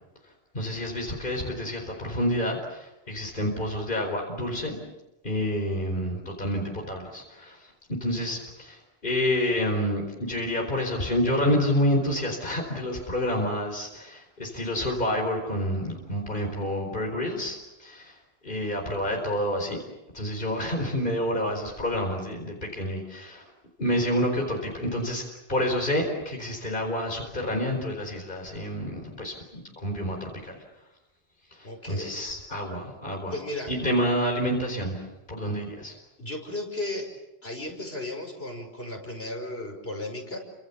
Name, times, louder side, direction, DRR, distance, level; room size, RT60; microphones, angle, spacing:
voice 1, 0.5-4.8 5.2-7.6 8.0-18.1 18.4-19.8 20.1-23.5 23.8-30.6 31.5-33.4 33.7-35.9, equal, 50° left, 1 dB, 4.7 m, -28 dB
voice 2, 31.6-32.2 33.3-33.7 36.2-37.1 37.4-40.4, left 2 dB, 75° left, 3 dB, 5.7 m, -35 dB
30.0 x 26.5 x 7.2 m, 0.94 s
omnidirectional pair, 1.1 m